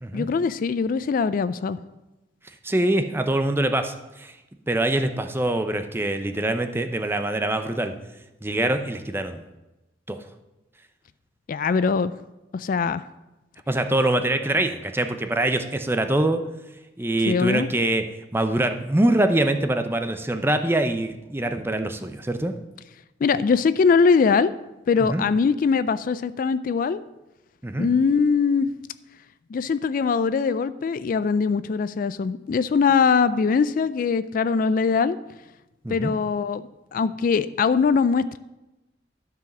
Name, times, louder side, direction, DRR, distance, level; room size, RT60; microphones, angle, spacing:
voice 1, 0.1-1.8 11.5-12.1 12.5-13.0 17.3-17.7 23.2-24.5 24.9-27.0 27.8-28.7 29.5-35.2 35.9-38.4, left 5 dB, 50° left, 14 dB, 0.3 m, -22 dB
voice 2, 2.6-4.3 4.7-7.9 8.4-9.4 10.1-10.2 13.7-16.4 17.0-18.1 18.3-22.5 25.0-25.2 27.6-27.9 35.8-36.1, right 1 dB, 15° right, 7 dB, 0.6 m, -24 dB
12.5 x 4.8 x 6.0 m, 1.0 s
head